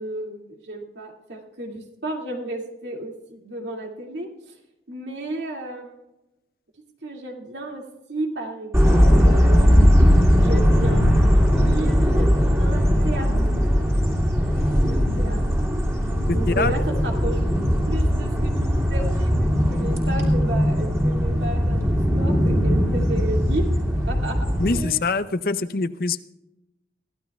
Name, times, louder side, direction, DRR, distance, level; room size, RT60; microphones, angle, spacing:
voice 1, 0.0-4.3 4.9-5.9 7.0-7.8 8.1-9.8 10.4-13.3 14.6-15.4 16.3-17.4 17.9-23.6 24.1-25.0, right 1 dB, 85° right, 1 dB, 2.3 m, -33 dB
sound 1, 8.7-24.8, equal, 15° right, 2.5 m, -19 dB
voice 2, 16.3-16.7 24.6-26.2, left 3 dB, 55° left, 13 dB, 0.6 m, -24 dB
23.0 x 15.0 x 2.4 m, 0.96 s
head